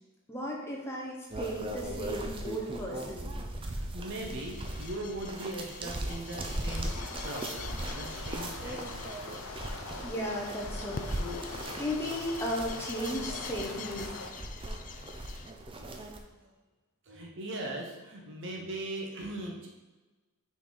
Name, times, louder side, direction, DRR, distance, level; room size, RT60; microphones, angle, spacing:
voice 1, 0.3-3.3 10.0-14.1, equal, 10° left, -3 dB, 1.0 m, -36 dB
sound 1, 1.3-16.2, right 1 dB, 25° right, 0.5 m, -39 dB
voice 2, 3.6-9.3 14.3-14.4 15.6-16.5 17.0-19.7, right 1 dB, 55° right, 0 dB, 0.9 m, -40 dB
sound 2, 4.2-15.5, left 6 dB, 35° left, 0.3 m, -47 dB
sound 3, 6.7-14.3, left 3 dB, 65° left, 0.8 m, -43 dB
5.9 x 4.2 x 3.9 m, 1.2 s
head